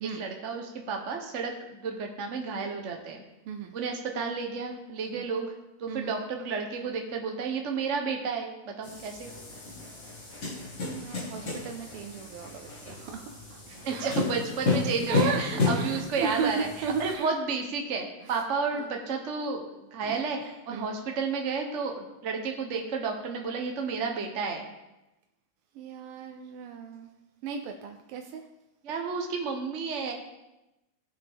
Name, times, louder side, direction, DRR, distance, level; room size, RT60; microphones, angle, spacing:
voice 1, 0.0-3.2 3.7-5.5 5.8-9.3 13.7-24.7 28.8-30.1, right 5 dB, 45° right, 3 dB, 1.0 m, -32 dB
sound 1, 8.8-17.1, left 3 dB, 40° left, 2.1 m, -32 dB
voice 2, 10.8-13.6 13.9-14.1 15.1-17.3 18.7-18.8 20.0-20.2 20.7-20.9 25.7-27.1 27.4-28.4, right 6 dB, 85° right, 5 dB, 1.6 m, -35 dB
16.5 x 5.8 x 3.5 m, 0.97 s
omnidirectional pair, 2.4 m